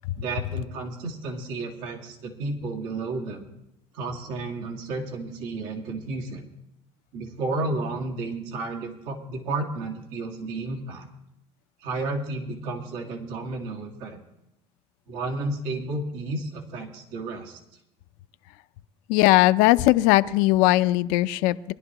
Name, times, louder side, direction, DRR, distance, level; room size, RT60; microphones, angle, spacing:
voice 1, 0.2-3.4 3.9-6.5 7.1-11.1 11.8-14.2 15.1-17.6, right 2 dB, 75° right, 1 dB, 2.1 m, -32 dB
voice 2, 19.1-21.7, left 17 dB, 75° left, 13 dB, 0.6 m, -19 dB
22.0 x 11.5 x 3.0 m, 0.85 s
supercardioid pair, 90°, 14 cm